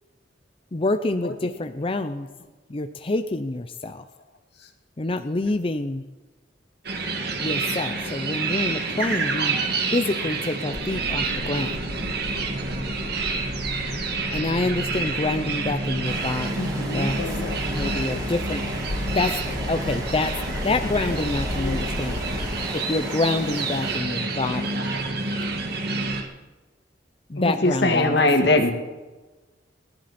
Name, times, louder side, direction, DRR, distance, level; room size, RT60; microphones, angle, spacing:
voice 1, 0.7-2.3 2.7-4.0 5.0-6.0 7.4-9.6 9.9-11.8 14.3-16.6 16.9-17.1 17.7-18.6 19.1-19.4 19.7-20.3 20.6-22.5 22.7-24.8 27.3-28.2, left 2 dB, 30° left, 9 dB, 0.6 m, -27 dB
voice 2, 1.2-1.6 4.6-4.7 24.7-24.9 27.4-28.7, left 2 dB, 65° left, 5 dB, 2.0 m, -21 dB
sound 1, 6.8-26.2, right 3 dB, 60° right, 2.1 m, -28 dB
sound 2, 10.7-22.7, left 1 dB, 50° left, 1.0 m, -34 dB
Rain, 16.0-24.0, right 1 dB, 20° right, 5.0 m, -36 dB
voice 3, 16.5-19.2 19.5-19.7 21.1-21.3 21.6-22.0, left 1 dB, 90° left, 5 dB, 2.0 m, -36 dB
29.0 x 10.5 x 4.3 m, 1.2 s
head